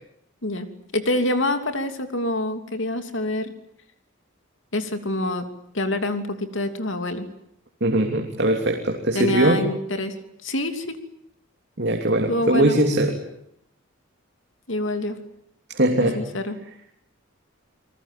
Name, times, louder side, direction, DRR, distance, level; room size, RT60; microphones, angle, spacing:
voice 1, 0.9-3.5 4.7-5.4 5.7-7.3 9.1-10.1 10.4-11.0 12.3-12.8 14.7-15.2 16.0-16.6, left 1 dB, 65° left, 8 dB, 3.0 m, -26 dB
voice 2, 7.8-9.6 11.8-13.1 15.7-16.1, right 1 dB, 55° right, 2 dB, 3.2 m, -20 dB
29.0 x 20.0 x 9.2 m, 0.74 s
head